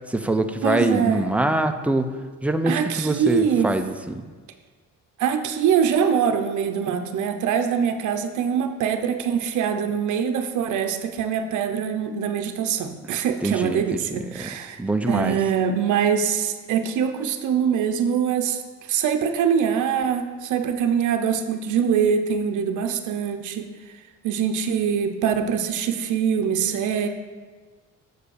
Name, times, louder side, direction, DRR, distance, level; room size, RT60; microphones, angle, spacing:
voice 1, 0.1-2.1 2.4-4.2 13.4-14.0 14.3-15.4, right 2 dB, 5° right, 7 dB, 0.5 m, -24 dB
voice 2, 0.6-1.2 2.7-3.7 5.2-14.8 15.1-18.6 18.9-23.7 24.2-27.1, right 7 dB, 75° right, 6 dB, 0.7 m, -23 dB
6.8 x 5.0 x 6.5 m, 1.4 s
cardioid pair, 90°, 30 cm